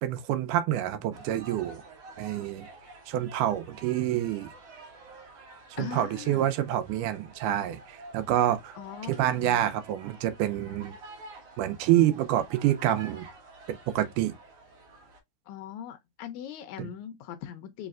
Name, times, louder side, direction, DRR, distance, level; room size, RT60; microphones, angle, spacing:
voice 1, 0.0-1.8 2.2-2.7 3.1-4.5 5.7-8.8 9.0-11.0 11.6-13.3 13.7-14.4 16.8-16.9, right 12 dB, 80° right, 2.1 m, -27 dB
sound 1, 1.1-15.2, right 2 dB, 65° right, 1.8 m, -50 dB
voice 2, 5.8-6.5 8.8-9.6 15.5-17.9, left 9 dB, 80° left, 1.8 m, -40 dB
5.0 x 3.3 x 2.4 m
omnidirectional pair, 3.7 m